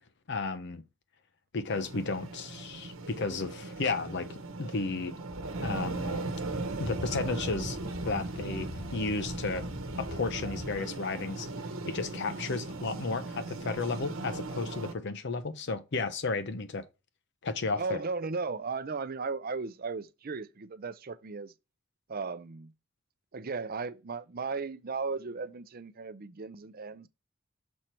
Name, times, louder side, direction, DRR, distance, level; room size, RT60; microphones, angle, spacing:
voice 1, 0.3-0.8 1.5-5.1 5.6-6.2 6.8-7.8 8.0-9.6 10.0-11.5 11.9-16.8 17.4-18.0, left 3 dB, 55° left, 0.7 m, -33 dB
sound 1, 1.7-14.9, right 2 dB, 75° right, 1.1 m, -38 dB
sound 2, 5.3-10.8, left 2 dB, 5° left, 0.6 m, -44 dB
voice 2, 17.8-21.5 22.1-22.7 23.3-27.1, right 4 dB, 45° right, 0.6 m, -36 dB
6.4 x 4.4 x 4.4 m
head